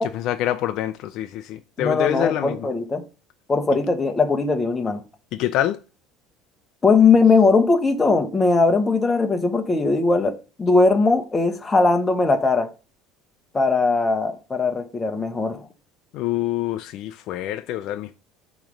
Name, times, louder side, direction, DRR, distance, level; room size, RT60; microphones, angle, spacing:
voice 1, 0.1-2.6 5.3-5.8 16.1-18.2, left 13 dB, 50° left, 0.4 m, -26 dB
voice 2, 1.8-3.0 3.5-5.0 6.8-12.7 13.5-15.7, left 3 dB, 15° left, 0.9 m, -19 dB
8.8 x 3.1 x 6.3 m
cardioid pair, 165°, 0 cm